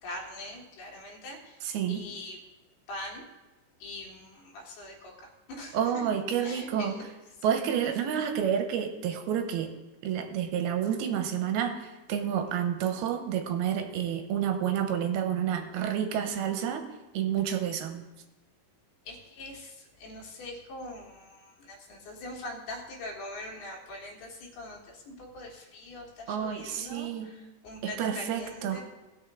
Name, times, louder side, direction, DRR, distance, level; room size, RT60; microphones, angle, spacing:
voice 1, 0.0-1.6 1.9-2.4 2.9-3.2 3.8-6.1 6.4-7.0 19.1-28.8, left 1 dB, 75° left, -2 dB, 3.6 m, -42 dB
voice 2, 1.6-2.0 5.7-7.0 7.4-9.7 10.0-16.8 17.1-18.0 26.3-27.3 27.8-28.8, right 9 dB, 80° right, 6 dB, 2.6 m, -29 dB
18.5 x 6.5 x 3.7 m, 1.1 s
omnidirectional pair, 4.6 m